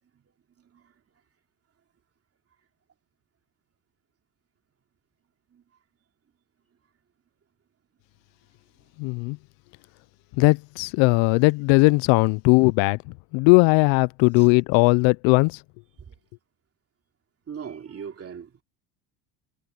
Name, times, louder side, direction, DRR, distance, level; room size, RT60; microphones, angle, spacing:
voice 1, 0.6-0.9 5.5-5.6 14.4-14.5 16.0-16.1 17.5-18.6, right 7 dB, 30° right, 2.9 m, -39 dB
voice 2, 9.0-9.4 10.4-13.0 13.3-15.6, left 28 dB, 70° left, 0.5 m, -18 dB
cardioid pair, 115°, 46 cm